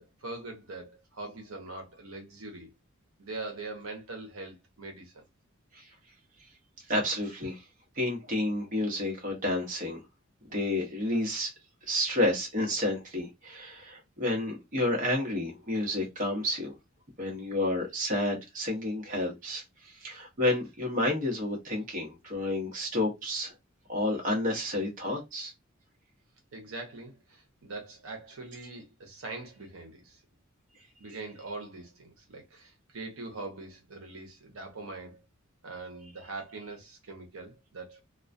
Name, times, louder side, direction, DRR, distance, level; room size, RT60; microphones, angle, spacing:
voice 1, 0.0-2.7 3.2-5.2 26.5-30.2 31.0-35.2 35.6-38.0, right 3 dB, 85° right, 0.7 m, -42 dB
voice 2, 6.9-7.6 7.9-10.0 10.5-11.5 11.9-16.8 17.2-23.5 23.9-25.5, left 1 dB, 40° right, 0.9 m, -30 dB
2.2 x 2.2 x 2.5 m
head